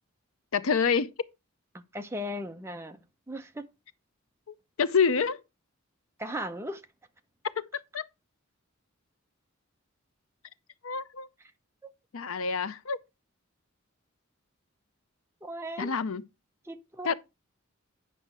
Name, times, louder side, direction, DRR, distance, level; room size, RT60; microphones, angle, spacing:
voice 1, 0.5-1.1 4.5-5.4 7.6-7.7 7.9-8.1 10.8-11.3 12.1-13.0 15.8-16.2 17.0-17.1, left 5 dB, 80° left, 0.6 m, -27 dB
voice 2, 1.7-3.0 3.3-3.7 6.2-6.8 11.8-11.9 15.4-15.9 16.6-17.1, equal, 10° right, 0.8 m, -37 dB
9.2 x 5.4 x 4.7 m
head